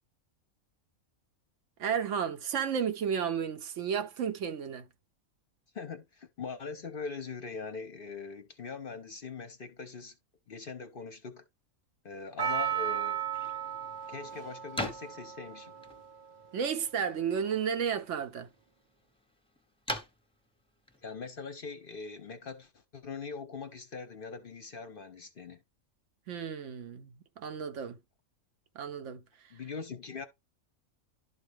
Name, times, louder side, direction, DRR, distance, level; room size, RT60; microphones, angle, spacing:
voice 1, 1.8-4.8 16.5-18.5 26.3-27.1 27.4-28.0 28.8-29.2, right 7 dB, 65° right, 1.0 m, -32 dB
voice 2, 5.7-10.1 10.5-11.4 12.0-13.2 14.1-15.7 21.0-25.6 29.5-30.3, left 5 dB, 50° left, 0.8 m, -42 dB
Percussion, 12.4-16.7 17.4-17.5, right 9 dB, 40° right, 0.7 m, -35 dB
sound 1, 13.1-22.3, left 1 dB, 5° left, 0.8 m, -45 dB
11.5 x 4.0 x 3.4 m
omnidirectional pair, 1.4 m